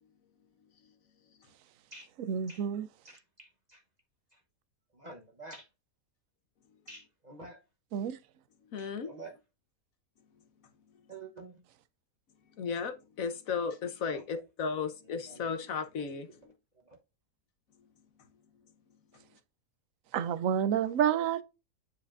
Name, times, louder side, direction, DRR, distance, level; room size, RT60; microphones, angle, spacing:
voice 1, 2.3-2.9 7.9-8.2 20.1-21.4, right 9 dB, 75° right, 1.0 m, -29 dB
voice 2, 3.0-3.8 4.3-4.4 4.9-5.7 6.9-7.6 8.8-9.4 11.1-11.6 14.1-14.2 15.1-15.5 16.0-16.1 16.7-17.0, right 3 dB, 35° right, 1.0 m, -49 dB
voice 3, 8.7-9.1 12.6-16.5, left 5 dB, 70° left, 1.4 m, -35 dB
9.3 x 5.0 x 2.5 m
omnidirectional pair, 1.5 m